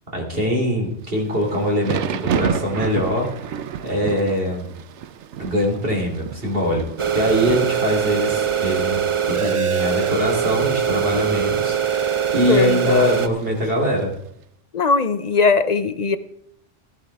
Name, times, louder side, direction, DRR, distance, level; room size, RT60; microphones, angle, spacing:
voice 1, 0.1-3.4 3.8-4.7 5.4-6.9 7.1-14.1, equal, 55° right, 0 dB, 3.6 m, -22 dB
Thunder / Rain, 1.1-14.2, right 8 dB, 85° right, 1.0 m, -32 dB
sound 1, 7.0-13.3, right 8 dB, 35° right, 0.6 m, -22 dB
voice 2, 12.5-12.9 14.7-16.2, left 4 dB, 40° left, 12 dB, 0.7 m, -19 dB
15.5 x 11.5 x 3.6 m, 0.72 s
omnidirectional pair, 1.2 m